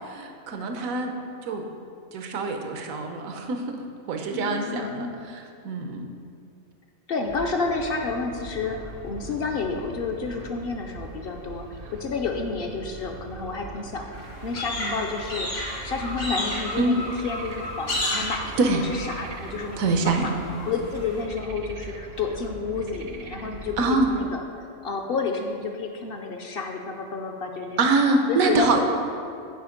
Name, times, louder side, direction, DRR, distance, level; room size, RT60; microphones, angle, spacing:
voice 1, 0.0-1.6 2.1-6.1 16.8-17.0 18.6-18.8 19.8-20.3 23.8-24.1 27.8-28.8, right 3 dB, 85° right, 4 dB, 1.2 m, -25 dB
voice 2, 4.3-5.4 7.1-19.8 20.0-20.3 20.7-27.8 28.3-28.7, left 4 dB, 60° left, 3 dB, 0.6 m, -30 dB
sound 1, 7.2-24.2, right 2 dB, 55° right, 0.6 m, -41 dB
sound 2, 14.1-21.2, left 1 dB, 80° left, 2.4 m, -33 dB
9.2 x 4.5 x 5.0 m, 2.5 s
omnidirectional pair, 1.4 m